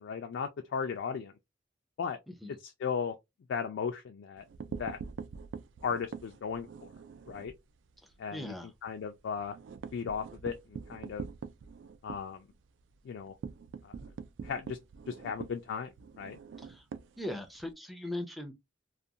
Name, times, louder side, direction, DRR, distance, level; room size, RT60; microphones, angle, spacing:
voice 1, 0.0-1.3 2.0-2.2 2.6-3.2 3.5-4.4 4.8-5.0 5.8-6.9 7.3-7.5 8.2-8.5 8.8-9.6 9.9-11.2 12.0-12.5 13.0-13.4 13.8-13.9 14.4-14.8 15.1-16.4, left 6 dB, 85° left, 0.3 m, -36 dB
sound 1, 4.4-7.6 8.0-8.1 8.4-8.5 8.9-17.7, right 6 dB, 85° right, 0.3 m, -44 dB
voice 2, 8.3-8.7 16.6-16.8 17.2-18.5, left 1 dB, ahead, 0.4 m, -39 dB
2.4 x 2.2 x 2.7 m
head